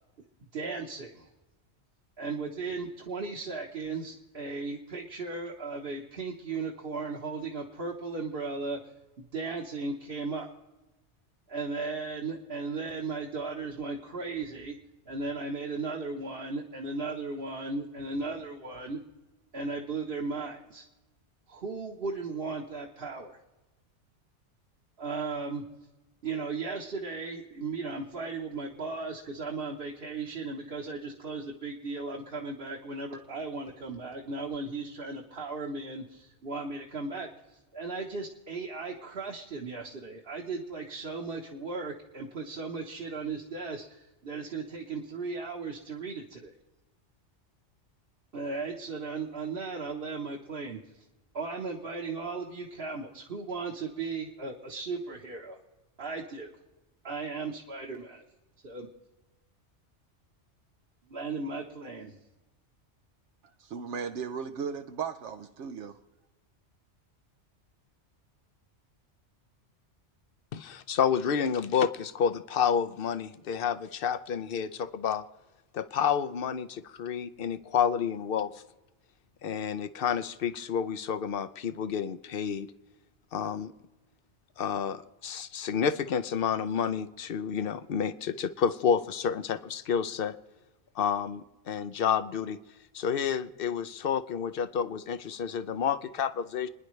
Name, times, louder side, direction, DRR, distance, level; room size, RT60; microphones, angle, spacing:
voice 1, 0.5-1.3 2.2-8.8 9.2-10.5 11.5-14.8 15.0-19.0 19.5-20.8 21.5-23.4 25.0-25.6 26.2-46.5 48.3-51.0 51.3-55.6 56.0-56.5 57.0-58.2 58.6-58.9 61.1-62.2, right 4 dB, 55° right, 1.5 m, -36 dB
voice 2, 63.6-66.0, right 6 dB, 75° right, 1.0 m, -36 dB
voice 3, 70.5-75.2 75.7-78.5 79.4-82.7 83.3-83.7 84.6-90.4 91.0-92.6 92.9-96.7, left 7 dB, 60° left, 0.8 m, -29 dB
30.0 x 10.5 x 3.2 m
omnidirectional pair, 1.2 m